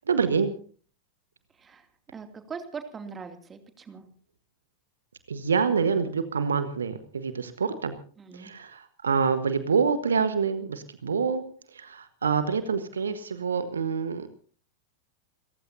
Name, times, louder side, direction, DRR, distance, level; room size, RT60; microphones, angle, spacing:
voice 1, 0.1-0.5 5.3-7.9 8.3-11.4 11.7-14.3, right 6 dB, 70° right, 11 dB, 1.4 m, -26 dB
voice 2, 1.6-4.0 8.2-8.5, right 5 dB, 20° right, 7 dB, 2.6 m, -41 dB
29.0 x 15.0 x 2.8 m, 0.42 s
figure-of-eight pair, 90°, 0 cm